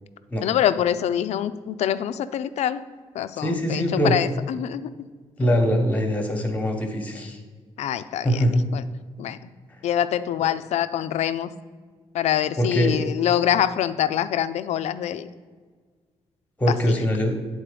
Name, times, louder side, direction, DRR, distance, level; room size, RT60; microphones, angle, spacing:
voice 1, 0.4-2.8 3.1-5.1 5.4-5.6 7.8-8.4 8.7-8.8 9.2-9.4 9.8-11.5 12.1-15.3, left 10 dB, 75° left, 13 dB, 0.4 m, -25 dB
voice 2, 3.4-4.1 5.4-7.4 8.2-8.6 9.7-9.8 10.4-10.5 12.6-13.0 16.6-17.4, equal, 15° left, 4 dB, 1.0 m, -23 dB
8.8 x 3.9 x 5.0 m, 1.5 s
cardioid pair, 135°, 11 cm